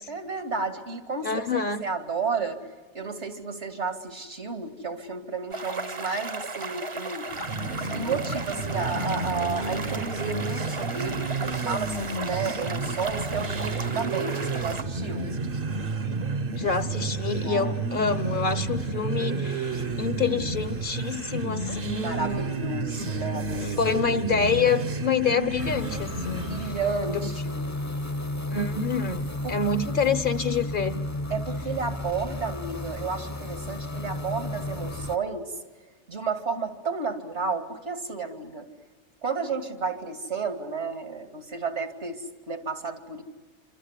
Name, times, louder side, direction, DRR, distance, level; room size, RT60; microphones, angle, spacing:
voice 1, 0.1-2.6 2.9-7.3 7.9-15.3 17.4-17.8 22.0-23.9 26.3-27.6 29.4-29.6 31.3-35.5 36.1-38.7 39.2-43.2, right 4 dB, 80° right, 2.9 m, -32 dB
voice 2, 1.2-1.8 16.6-22.6 23.0-23.2 23.6-26.7 27.1-27.2 28.5-31.1, left 5 dB, 50° left, 1.2 m, -27 dB
sound 1, 5.5-14.8, right 3 dB, 30° right, 0.9 m, -35 dB
sound 2, 7.3-26.8, right 3 dB, 55° right, 1.2 m, -31 dB
sound 3, 25.6-35.2, left 1 dB, 15° left, 0.9 m, -33 dB
27.5 x 26.0 x 8.3 m
omnidirectional pair, 1.2 m